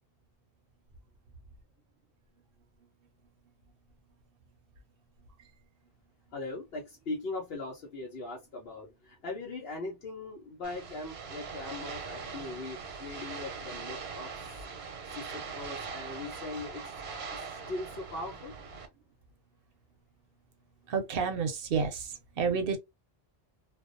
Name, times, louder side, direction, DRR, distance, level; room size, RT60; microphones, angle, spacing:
voice 1, 6.3-16.9 17.3-18.6, left 2 dB, 75° left, 0.9 m, -40 dB
sound 1, 10.6-18.9, right 5 dB, 90° right, 1.0 m, -41 dB
voice 2, 20.9-22.8, right 5 dB, 65° right, 0.7 m, -30 dB
2.5 x 2.0 x 2.5 m
omnidirectional pair, 1.0 m